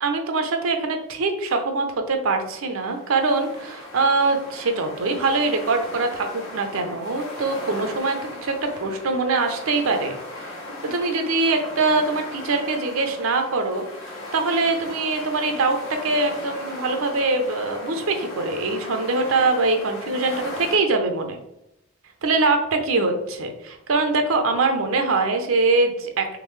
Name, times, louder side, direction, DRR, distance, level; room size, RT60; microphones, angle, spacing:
voice 1, 0.0-10.5 10.8-13.8 14.3-15.8 16.0-21.4 22.2-26.4, right 3 dB, 80° right, 5 dB, 0.6 m, -23 dB
sound 1, 2.6-20.8, left 1 dB, 80° left, 1.2 m, -37 dB
3.7 x 3.2 x 3.2 m, 0.84 s
head